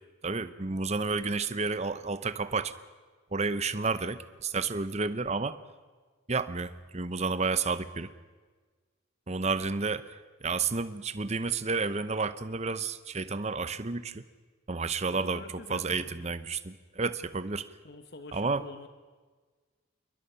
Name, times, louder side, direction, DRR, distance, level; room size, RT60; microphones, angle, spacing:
voice 1, 0.2-2.7 3.3-5.6 6.3-8.1 9.3-14.2 14.7-15.4 15.7-17.7 18.3-18.6, right 4 dB, 30° right, 13 dB, 0.8 m, -31 dB
voice 2, 15.0-16.3 17.8-18.9, left 2 dB, 50° left, 8 dB, 1.2 m, -47 dB
28.0 x 22.5 x 5.8 m, 1.4 s
head